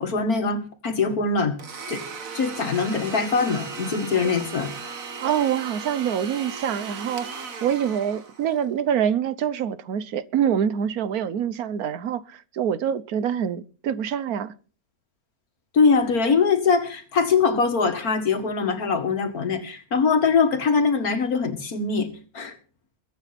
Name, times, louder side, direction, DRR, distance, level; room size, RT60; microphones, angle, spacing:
voice 1, 0.0-1.6 1.9-2.0 2.3-4.7 15.7-22.1 22.3-22.5, left 5 dB, 80° left, 2.3 m, -22 dB
Domestic sounds home sounds, 1.6-8.7, right 5 dB, 65° right, 1.9 m, -36 dB
voice 2, 5.2-7.3 7.6-14.5, right 8 dB, 80° right, 1.4 m, -25 dB
22.5 x 9.2 x 4.3 m
omnidirectional pair, 1.5 m